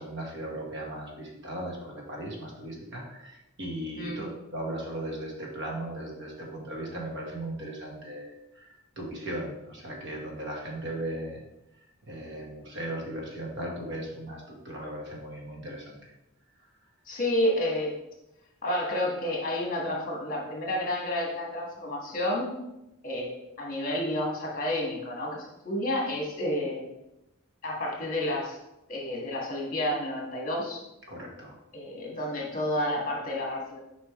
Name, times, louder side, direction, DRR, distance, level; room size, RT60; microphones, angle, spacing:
voice 1, 0.0-11.4 12.0-16.1 31.1-31.6, right 1 dB, 55° right, -1 dB, 1.4 m, -37 dB
voice 2, 17.1-17.9 18.6-22.5 23.0-26.9 27.6-28.6 28.9-30.8 31.7-33.8, left 1 dB, 40° left, -2 dB, 1.6 m, -30 dB
6.6 x 5.1 x 3.1 m, 0.90 s
head